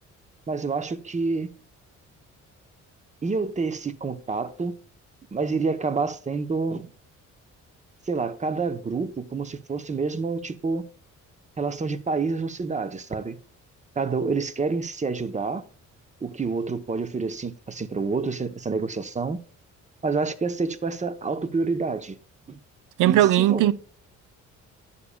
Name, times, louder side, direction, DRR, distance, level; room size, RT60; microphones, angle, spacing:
voice 1, 0.5-1.5 3.2-4.8 5.3-6.9 8.1-10.9 11.6-13.4 14.0-15.7 16.2-19.4 20.0-22.2 22.5-22.6 23.0-23.7, right 4 dB, 25° right, 0.7 m, -28 dB
voice 2, 23.0-23.7, right 13 dB, 90° right, 0.5 m, -18 dB
9.9 x 6.9 x 2.2 m
cardioid pair, 90°, 30 cm